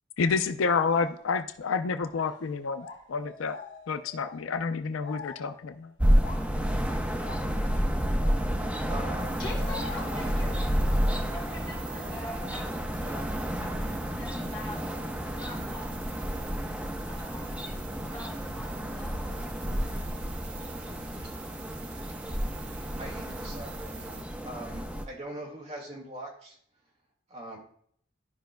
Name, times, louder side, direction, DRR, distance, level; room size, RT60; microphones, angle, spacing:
voice 1, 0.2-3.6 3.9-5.9, left 5 dB, 90° left, 10 dB, 0.5 m, -29 dB
sound 1, 0.9-1.2 2.0-5.5 6.2-6.6 7.1-7.5 8.2-9.1 9.4-13.2, left 3 dB, 65° left, 2.2 m, -45 dB
sound 2, 6.0-25.0, equal, 5° right, 0.6 m, -30 dB
voice 2, 8.9-9.4 23.0-26.6 27.3-27.6, right 1 dB, 35° right, -2 dB, 1.9 m, -42 dB
sound 3, 9.2-24.2, right 4 dB, 60° right, 0.8 m, -46 dB
voice 3, 9.4-13.8 14.1-14.8 15.2-16.0 17.1-17.7 18.0-19.3, left 2 dB, 25° left, -6 dB, 3.0 m, -45 dB
12.5 x 5.1 x 2.2 m, 0.62 s
head